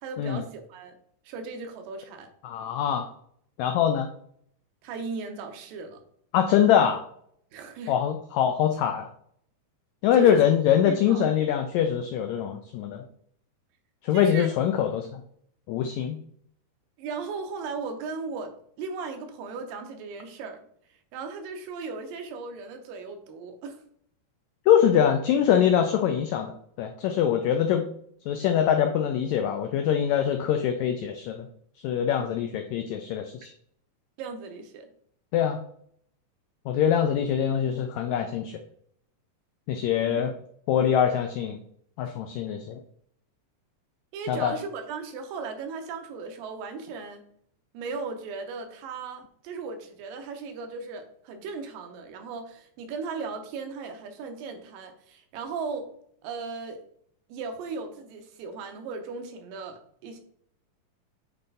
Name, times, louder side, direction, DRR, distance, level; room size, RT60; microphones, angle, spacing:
voice 1, 0.0-1.0 1.3-2.3 4.8-6.0 7.5-8.0 10.1-10.5 10.8-11.3 14.1-14.5 17.0-20.6 21.1-23.8 34.2-34.9 40.2-40.3 44.1-47.2 47.7-55.9 56.2-56.8 57.3-60.2, right 4 dB, 90° right, 5 dB, 2.6 m, -36 dB
voice 2, 2.4-3.1 3.6-4.1 6.3-7.0 7.9-9.1 10.0-13.0 14.0-15.2 15.7-16.2 24.7-26.5 26.8-27.9 28.3-31.5 31.8-33.5 35.3-35.6 36.7-38.6 39.7-40.3 40.7-41.6 42.0-42.8 44.3-44.5, left 9 dB, 90° left, 6 dB, 1.6 m, -23 dB
8.1 x 3.2 x 4.0 m, 0.65 s
omnidirectional pair, 3.8 m